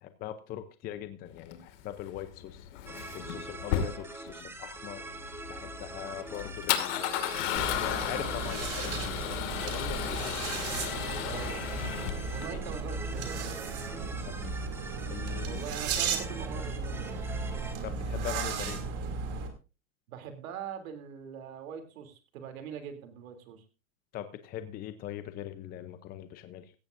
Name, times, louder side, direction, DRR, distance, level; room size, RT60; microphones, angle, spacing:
voice 1, 0.0-2.7 3.1-5.0 5.5-10.4 14.2-14.5 15.1-15.6 17.8-18.9 24.1-26.7, left 11 dB, 20° left, 10 dB, 0.7 m, -41 dB
Male speech man speaking / Car / Engine starting, 1.4-12.5, left 11 dB, 60° left, 2.2 m, -35 dB
sound 1, 2.9-17.8, right 2 dB, 5° right, 1.0 m, -44 dB
sound 2, 7.6-19.5, right 4 dB, 35° right, 2.8 m, -35 dB
voice 2, 11.2-11.7 12.3-13.7 15.4-17.2 20.1-23.6, right 7 dB, 75° right, 7 dB, 3.1 m, -42 dB
16.5 x 14.5 x 2.6 m, 0.32 s
supercardioid pair, 150°, 41 cm